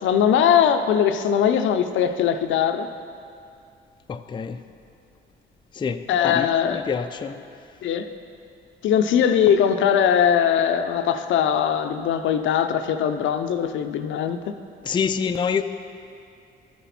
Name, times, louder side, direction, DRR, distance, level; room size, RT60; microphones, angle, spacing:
voice 1, 0.0-2.9 6.1-6.8 7.8-8.1 8.8-14.5, left 8 dB, 75° left, 8 dB, 0.5 m, -20 dB
voice 2, 4.1-4.6 5.7-7.4 14.8-15.6, left 6 dB, 25° left, 8 dB, 0.4 m, -26 dB
12.5 x 5.9 x 4.1 m, 2.4 s
cardioid pair, 90°, 20 cm